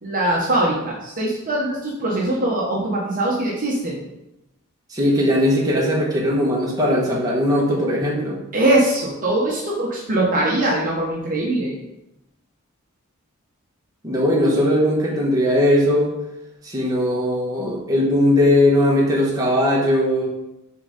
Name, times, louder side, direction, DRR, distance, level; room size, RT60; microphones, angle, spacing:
voice 1, 0.0-4.1 8.5-11.8, right 1 dB, 40° right, -4 dB, 1.1 m, -22 dB
voice 2, 4.9-8.4 14.0-16.1 16.6-20.3, left 1 dB, 15° right, -4 dB, 1.5 m, -19 dB
6.9 x 3.7 x 4.2 m, 0.89 s
head